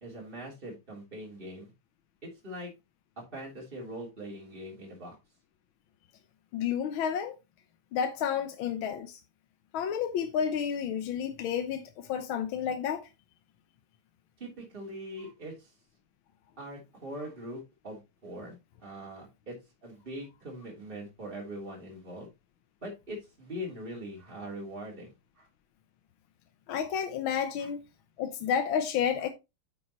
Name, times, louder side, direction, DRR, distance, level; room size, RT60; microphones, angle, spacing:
voice 1, 0.0-1.7 2.4-2.7 3.3-5.1 14.4-15.7 16.6-19.5 19.8-22.3 22.8-25.5 27.6-27.7, equal, 25° right, 3.4 m, -42 dB
voice 2, 6.5-7.3 7.9-9.2 9.7-13.0 26.7-27.8 28.2-29.3, left 8 dB, 75° left, 1.6 m, -30 dB
9.7 x 6.8 x 3.0 m
omnidirectional pair, 2.4 m